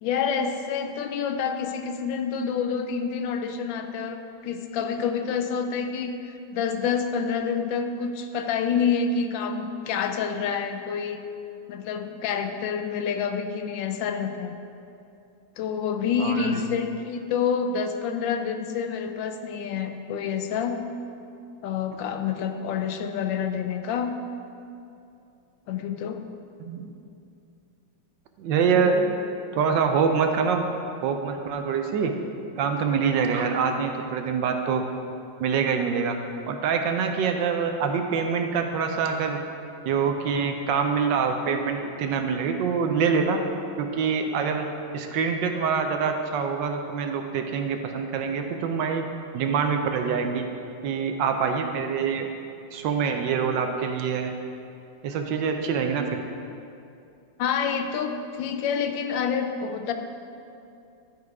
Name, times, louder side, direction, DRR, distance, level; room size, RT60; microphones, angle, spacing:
voice 1, 0.0-11.2 11.7-14.5 15.6-20.8 21.6-24.2 25.7-26.3 28.7-29.1 57.4-59.9, left 6 dB, 75° left, 6 dB, 1.2 m, -28 dB
voice 2, 16.2-16.6 26.6-26.9 28.4-28.9 29.5-30.7 31.0-32.1 32.6-34.8 35.4-36.2 36.5-39.4 39.9-43.4 43.8-44.6 44.9-49.0 49.3-50.4 50.8-52.3 52.7-54.3 55.0-56.2, right 6 dB, 75° right, 5 dB, 1.2 m, -25 dB
11.5 x 4.8 x 4.7 m, 2.6 s
omnidirectional pair, 2.1 m